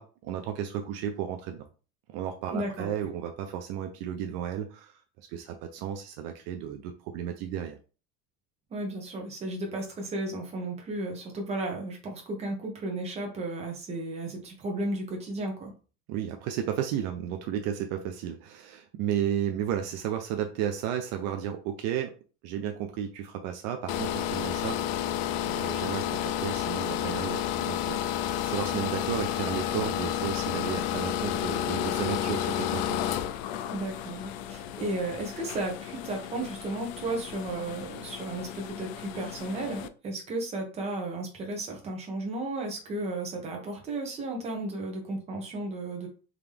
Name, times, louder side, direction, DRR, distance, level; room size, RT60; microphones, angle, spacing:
voice 1, 0.0-1.6 2.1-5.0 5.3-7.8 16.1-22.2 22.4-24.8 25.5-33.0, right 9 dB, 60° right, 6 dB, 0.5 m, -33 dB
voice 2, 2.5-2.9 8.7-15.7 33.7-46.1, right 2 dB, 20° right, 1 dB, 0.9 m, -34 dB
sound 1, 23.9-39.9, left 11 dB, 75° left, 0.4 m, -32 dB
3.7 x 2.9 x 3.4 m, 0.36 s
cardioid pair, 175°, 30 cm